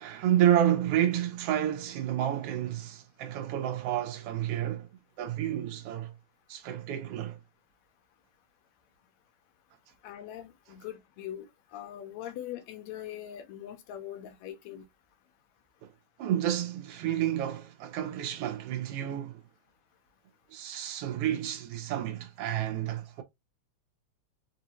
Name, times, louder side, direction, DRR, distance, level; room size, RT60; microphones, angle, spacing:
voice 1, 0.0-4.9 5.2-6.1 6.5-7.4 16.2-19.4 20.5-23.2, right 11 dB, 65° right, 1.6 m, -30 dB
voice 2, 10.0-11.5 11.7-14.9, left 11 dB, 75° left, 1.9 m, -41 dB
4.8 x 2.6 x 2.9 m
omnidirectional pair, 3.4 m